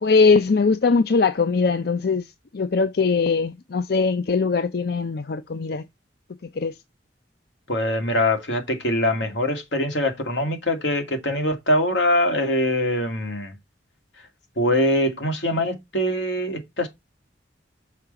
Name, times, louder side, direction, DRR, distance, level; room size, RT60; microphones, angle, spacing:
voice 1, 0.0-5.8 6.6-6.7, left 4 dB, 60° left, 0.5 m, -21 dB
voice 2, 7.7-13.6 14.6-16.9, left 1 dB, 85° left, 2.4 m, -23 dB
6.6 x 4.8 x 5.6 m
head